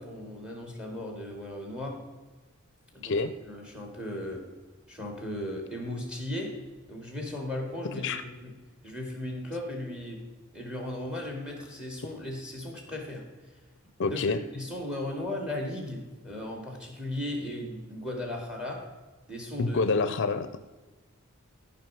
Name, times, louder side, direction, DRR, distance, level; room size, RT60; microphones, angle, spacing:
voice 1, 0.0-2.0 2.9-3.2 3.5-4.4 4.9-6.5 6.9-8.5 8.8-10.2 10.5-13.2 14.0-14.2 14.5-18.8 19.3-19.8, left 1 dB, 5° right, 1 dB, 2.3 m, -36 dB
voice 2, 7.9-8.2 14.0-14.4 19.6-20.6, left 4 dB, 60° left, 11 dB, 0.5 m, -27 dB
14.0 x 5.6 x 4.7 m, 1.2 s
head